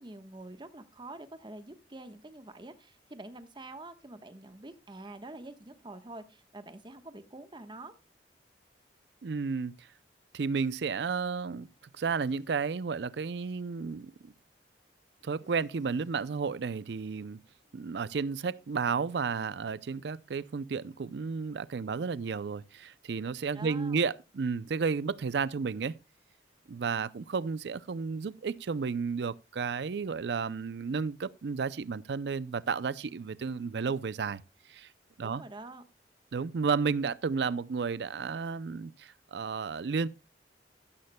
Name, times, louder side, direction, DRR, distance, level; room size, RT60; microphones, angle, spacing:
voice 1, 0.0-7.9 23.5-24.0 35.2-35.8 37.0-37.1, right 2 dB, 25° right, 1.1 m, -46 dB
voice 2, 9.2-9.9 10.3-11.7 12.0-14.3 15.2-17.4 17.7-25.9 26.7-34.4 34.7-34.9 35.2-35.4 36.3-40.1, right 5 dB, 70° right, 0.5 m, -32 dB
sound 1, 11.7-12.5 13.5-13.6 15.2-16.3 17.6-18.9, left 1 dB, 40° left, 3.1 m, -62 dB
14.0 x 13.0 x 2.2 m
head